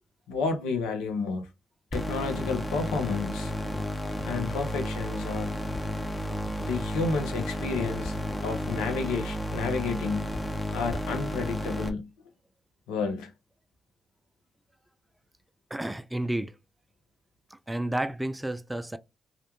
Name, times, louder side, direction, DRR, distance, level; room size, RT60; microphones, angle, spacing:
voice 1, 0.3-1.5 1.9-3.5 4.2-5.6 6.6-8.1 8.4-10.3 10.7-12.1 12.9-13.3, left 4 dB, 80° left, 0.5 m, -31 dB
sound 1, 1.9-11.9, equal, 25° left, 0.8 m, -32 dB
voice 2, 15.7-16.6 17.5-19.0, right 1 dB, 15° right, 0.3 m, -31 dB
2.4 x 2.1 x 2.9 m
hypercardioid pair, 40°, 0 cm